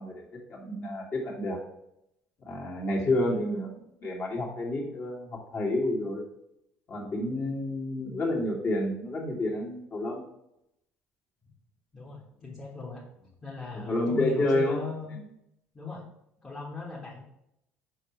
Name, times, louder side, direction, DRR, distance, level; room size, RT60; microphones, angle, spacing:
voice 1, 0.0-1.6 2.5-6.3 6.9-10.2 13.9-14.8, left 1 dB, 40° left, -3 dB, 2.2 m, -29 dB
voice 2, 3.0-3.3 11.9-13.0 13.4-15.1 15.7-16.0 16.4-17.2, left 4 dB, 20° left, -4 dB, 1.5 m, -38 dB
6.3 x 5.6 x 3.1 m, 0.81 s
figure-of-eight pair, 55°, 6 cm